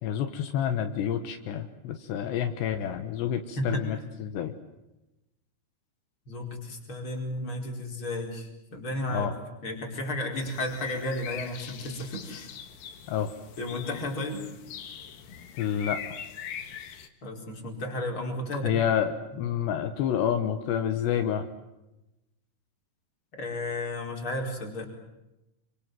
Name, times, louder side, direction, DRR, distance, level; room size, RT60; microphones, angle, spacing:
voice 1, 0.0-4.5 9.1-9.3 13.1-13.3 15.6-16.0 18.6-21.5, left 9 dB, 80° left, 7 dB, 3.5 m, -28 dB
voice 2, 6.3-9.3 9.6-12.5 13.6-14.5 17.2-18.8 23.3-24.9, left 1 dB, 30° left, 1 dB, 5.3 m, -33 dB
sound 1, 10.4-17.1, left 8 dB, 60° left, 3.1 m, -42 dB
28.5 x 25.5 x 7.8 m, 0.95 s
omnidirectional pair, 5.0 m